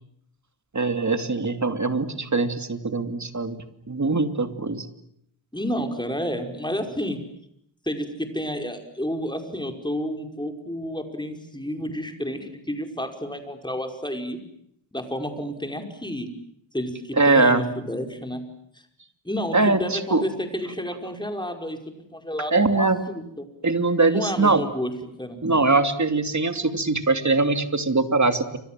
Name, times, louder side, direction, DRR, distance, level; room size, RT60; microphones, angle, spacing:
voice 1, 0.7-4.9 17.2-17.7 19.5-20.2 22.5-23.0 23.6-24.6 25.4-28.6, right 3 dB, 35° right, 8 dB, 2.8 m, -22 dB
voice 2, 5.5-7.2 7.8-14.4 14.9-16.3 16.7-18.4 19.2-23.5 24.1-25.4, equal, 10° left, 4 dB, 5.3 m, -30 dB
29.0 x 26.0 x 7.7 m, 0.74 s
wide cardioid pair, 75°, 47 cm